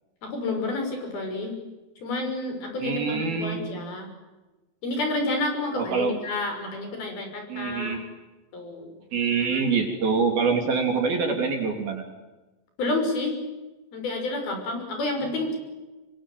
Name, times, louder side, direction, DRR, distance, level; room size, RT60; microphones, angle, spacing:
voice 1, 0.2-1.6 2.0-4.1 4.8-8.0 8.5-9.0 12.8-13.4 13.9-15.6, left 2 dB, 45° left, 5 dB, 7.7 m, -29 dB
voice 2, 2.8-3.6 5.8-6.2 7.5-8.0 9.1-12.0, right 5 dB, 50° right, 4 dB, 4.7 m, -25 dB
26.0 x 25.0 x 9.3 m, 1.1 s
omnidirectional pair, 5.9 m